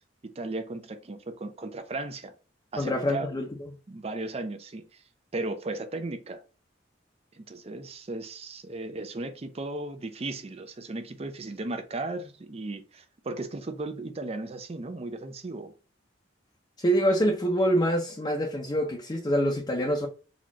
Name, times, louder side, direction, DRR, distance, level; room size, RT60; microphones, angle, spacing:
voice 1, 0.2-2.3 2.7-3.3 3.9-5.0 5.3-6.4 7.3-15.7, right 2 dB, 35° right, 0.5 m, -36 dB
voice 2, 2.8-3.4 16.8-20.1, equal, 25° left, 0.5 m, -25 dB
4.2 x 2.4 x 2.9 m
head